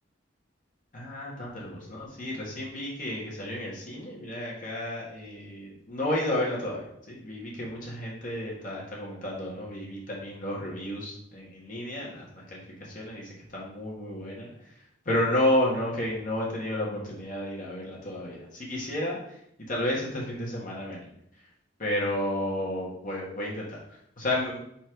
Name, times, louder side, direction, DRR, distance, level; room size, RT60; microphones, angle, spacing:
voice 1, 0.9-14.5 15.0-19.4 19.7-21.0 21.8-24.6, left 1 dB, 45° left, -4 dB, 1.6 m, -31 dB
5.0 x 4.3 x 4.6 m, 0.73 s
head